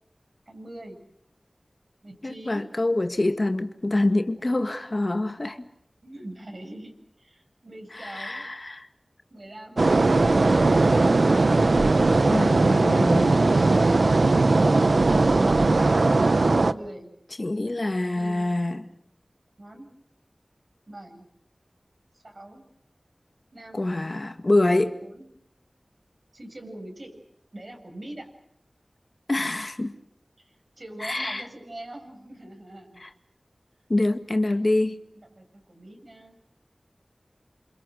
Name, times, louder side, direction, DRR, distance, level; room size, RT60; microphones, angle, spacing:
voice 1, 0.5-1.0 2.0-2.6 4.1-4.2 4.5-4.8 6.0-8.4 9.3-9.9 16.7-17.1 18.1-18.5 19.6-19.9 20.9-21.2 22.1-22.6 23.5-23.9 25.0-25.3 26.3-27.2 27.5-28.3 30.4-33.0 34.4-34.7 35.1-36.4, right 1 dB, 55° right, 3 dB, 7.7 m, -43 dB
voice 2, 2.2-5.7 7.9-8.9 12.2-13.4 17.4-18.9 23.7-25.0 29.3-29.9 31.0-31.4 33.0-33.1 33.9-35.0, left 2 dB, 45° left, 8 dB, 1.9 m, -25 dB
sound 1, 9.8-16.7, right 3 dB, 75° right, 0.9 m, -19 dB
29.5 x 26.5 x 6.5 m, 0.74 s
wide cardioid pair, 65°, 0 cm